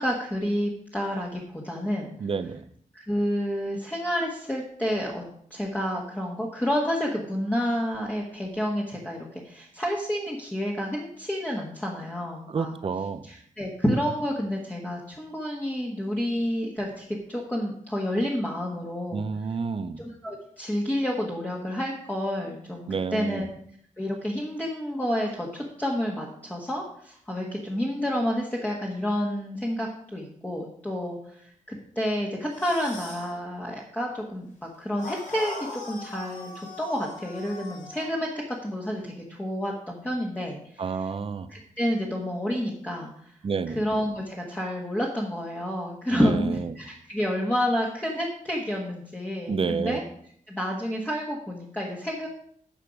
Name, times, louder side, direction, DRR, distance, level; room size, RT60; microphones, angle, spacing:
voice 1, 0.0-2.1 2.9-12.7 13.2-19.3 20.0-23.5 24.0-41.1 41.5-43.3 43.7-50.0 50.5-52.3, equal, 10° left, -3 dB, 1.4 m, -29 dB
voice 2, 2.2-2.6 12.5-13.2 19.1-20.0 22.9-23.5 40.8-41.5 43.4-43.8 46.1-46.7 49.5-50.0, right 5 dB, 40° right, 12 dB, 0.7 m, -29 dB
sound 1, 32.5-33.3 35.0-38.1, left 3 dB, 65° left, 3.1 m, -40 dB
10.0 x 6.4 x 5.3 m, 0.63 s
wide cardioid pair, 150°, 14 cm